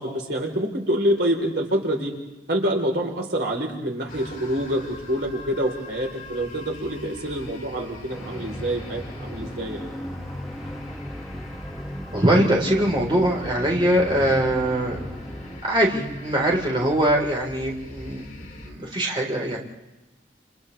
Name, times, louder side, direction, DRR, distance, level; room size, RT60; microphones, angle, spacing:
voice 1, 0.0-2.1 2.5-9.8, equal, 70° right, 0 dB, 4.0 m, -26 dB
sound 1, 4.1-18.7, left 1 dB, 45° left, 3.9 m, -41 dB
sound 2, 8.1-15.6, equal, ahead, 1.2 m, -37 dB
voice 2, 12.1-15.1 15.6-19.6, right 1 dB, 30° right, -2 dB, 4.1 m, -22 dB
30.0 x 30.0 x 3.4 m, 1.0 s
head